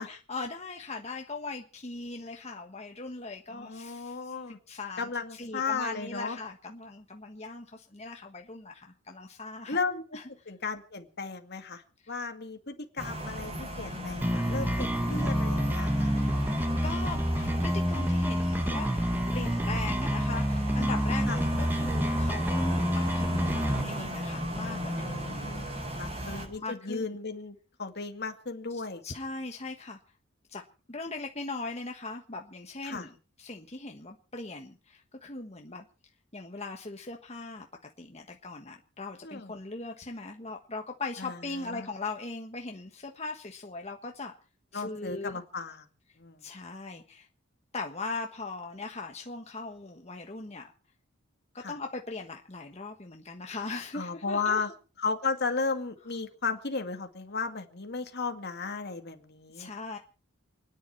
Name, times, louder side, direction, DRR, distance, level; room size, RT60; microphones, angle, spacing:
voice 1, 0.0-9.8 10.1-10.2 12.0-12.1 16.1-16.4 16.8-18.9 19.3-25.5 26.0-27.0 29.0-30.0 30.5-30.6 30.9-33.1 33.4-35.9 36.3-37.7 38.0-44.3 44.7-45.4 46.4-47.3 47.7-50.7 51.5-54.6 59.5-60.0, left 3 dB, 30° left, 3 dB, 1.4 m, -40 dB
voice 2, 3.5-4.6 5.0-6.4 9.7-10.2 10.5-16.1 21.3-21.4 25.0-29.0 32.8-33.1 39.2-39.5 41.2-41.9 44.7-45.9 46.2-46.4 51.6-51.8 53.9-54.7 55.0-59.7, left 4 dB, 50° left, 6 dB, 2.3 m, -35 dB
sound 1, 13.0-26.5, equal, 30° right, 7.2 m, -36 dB
sound 2, 14.2-23.8, equal, 10° right, 1.4 m, -28 dB
29.5 x 10.5 x 4.6 m, 0.38 s
head